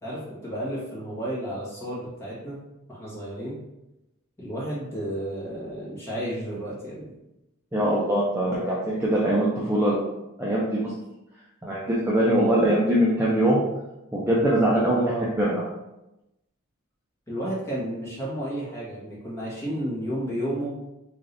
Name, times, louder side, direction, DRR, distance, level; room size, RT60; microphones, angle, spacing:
voice 1, 0.0-2.6 2.9-3.6 4.4-7.1 15.0-15.2 17.3-20.7, right 1 dB, 15° left, -8 dB, 1.3 m, -32 dB
voice 2, 7.7-10.0 10.4-10.9 11.6-13.6 14.1-15.1 15.4-15.6, right 1 dB, 10° right, -6 dB, 0.4 m, -22 dB
3.6 x 3.3 x 2.6 m, 0.95 s
head